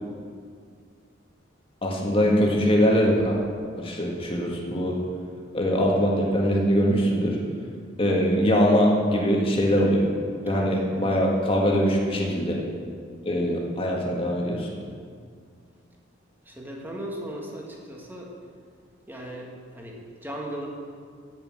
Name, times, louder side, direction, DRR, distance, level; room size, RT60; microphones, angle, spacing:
voice 1, 1.8-3.4 3.8-5.0 5.5-7.4 8.0-10.1 10.4-12.6 13.2-14.7, equal, 30° left, -2 dB, 1.8 m, -22 dB
voice 2, 10.5-11.0 16.5-18.3 19.1-20.7, right 1 dB, 10° right, -2 dB, 1.8 m, -37 dB
9.1 x 8.8 x 7.4 m, 2.1 s
head